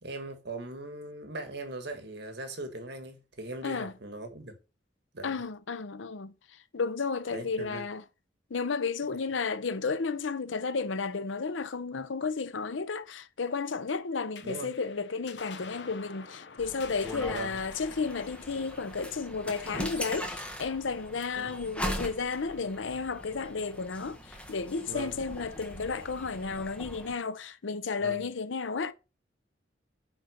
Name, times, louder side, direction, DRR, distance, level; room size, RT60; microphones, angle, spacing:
voice 1, 0.0-4.6 5.1-5.4 7.3-7.8 14.4-14.7 17.3-17.6 21.4-21.6 24.9-25.2 28.0-28.2, right 2 dB, 60° right, 1.7 m, -40 dB
voice 2, 5.2-6.3 6.7-8.0 8.5-28.9, left 4 dB, 90° left, 0.7 m, -33 dB
sound 1, 14.3-21.1, left 5 dB, 65° left, 0.9 m, -49 dB
sound 2, 16.6-27.2, equal, 5° left, 1.3 m, -40 dB
9.7 x 3.9 x 6.5 m
head